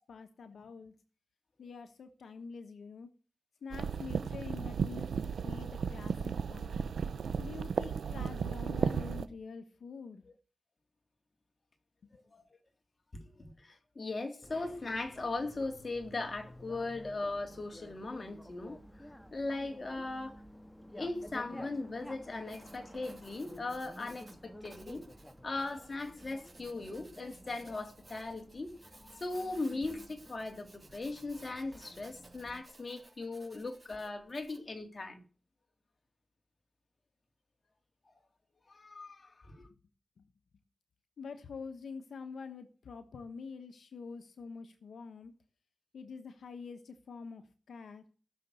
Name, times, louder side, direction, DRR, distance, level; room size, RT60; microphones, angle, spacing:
voice 1, 0.1-0.9 1.6-3.1 3.6-5.1 5.4-6.8 7.4-10.2 41.2-45.3 45.9-48.0, left 5 dB, 90° left, 1.2 m, -46 dB
sound 1, 3.7-9.3, right 6 dB, 90° right, 0.8 m, -35 dB
voice 2, 13.1-18.8 19.3-20.4 20.9-25.1 25.4-28.8 29.0-35.2 38.7-39.7, left 3 dB, 45° left, 2.9 m, -39 dB
Bicycle, 14.4-32.6, equal, 10° left, 1.7 m, -52 dB
Writing, 22.4-34.7, right 2 dB, 35° right, 3.7 m, -58 dB
19.0 x 6.7 x 8.1 m
cardioid pair, 70°, 0 cm